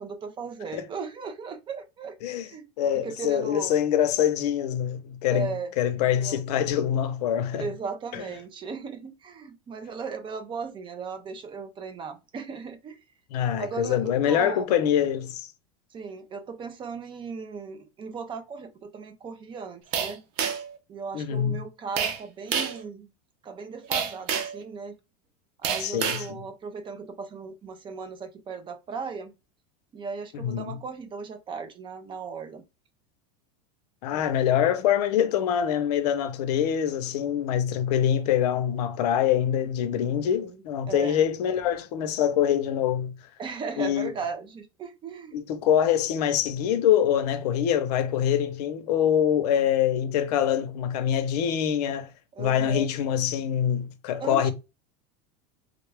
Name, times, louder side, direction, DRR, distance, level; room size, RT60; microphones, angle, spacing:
voice 1, 0.0-2.7 2.9-3.7 5.3-5.7 6.2-6.4 7.6-13.0 13.6-14.8 15.9-20.2 20.9-23.1 23.4-25.0 25.6-29.3 29.9-32.6 34.1-34.2 40.2-41.2 43.4-45.4 52.4-52.9 54.2-54.5, right 5 dB, 25° right, 0.5 m, -37 dB
voice 2, 2.8-5.5 5.8-7.7 8.1-8.2 13.3-15.5 21.1-21.6 25.8-26.4 30.3-30.8 34.0-43.1 43.8-44.1 45.3-52.1 52.4-54.5, left 9 dB, 80° left, 0.6 m, -25 dB
sound 1, 19.9-20.8 22.0-22.2 22.5-22.8 23.9-24.6 25.6-26.3, right 7 dB, 65° right, 0.8 m, -28 dB
3.5 x 2.3 x 3.2 m
supercardioid pair, 135°, 20 cm